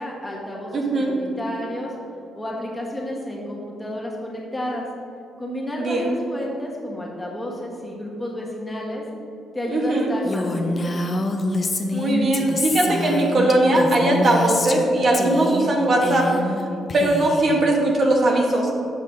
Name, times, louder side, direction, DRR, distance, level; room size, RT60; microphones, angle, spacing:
voice 1, 0.0-1.9 2.3-4.9 5.4-9.0 9.5-10.9, left 1 dB, 15° left, -3 dB, 1.4 m, -31 dB
voice 2, 0.7-1.1 5.8-6.1 9.7-10.1 11.9-16.3 16.9-18.7, right 1 dB, 50° right, -1 dB, 1.0 m, -19 dB
Female speech woman speaking, 10.2-14.9 15.1-15.7 16.0-16.6 16.9-17.6, left 2 dB, 35° left, 0.6 m, -26 dB
6.8 x 5.5 x 3.7 m, 2.6 s
cardioid pair, 100°, 0 cm